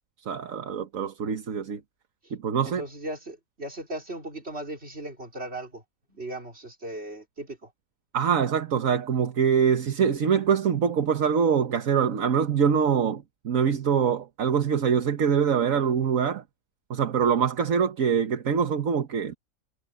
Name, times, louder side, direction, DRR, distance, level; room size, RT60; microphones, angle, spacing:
voice 1, 0.3-1.8 2.3-2.8 8.1-16.4 16.9-19.3, right 7 dB, 75° right, 1.6 m, -24 dB
voice 2, 2.6-5.8 6.1-7.7, right 1 dB, 50° right, 4.4 m, -37 dB
omnidirectional pair, 1.4 m